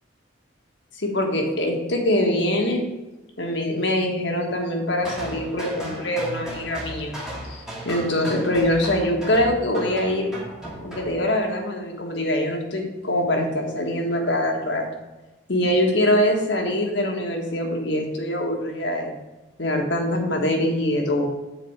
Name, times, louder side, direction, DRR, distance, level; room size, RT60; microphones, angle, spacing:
voice 1, 1.0-2.8 3.4-7.2 7.5-10.3 10.8-14.8 15.5-19.1 19.6-21.3, left 1 dB, 65° left, 2 dB, 1.5 m, -23 dB
sound 1, 5.0-11.1, equal, 5° right, 1.5 m, -35 dB
7.7 x 4.2 x 6.5 m, 1.1 s
head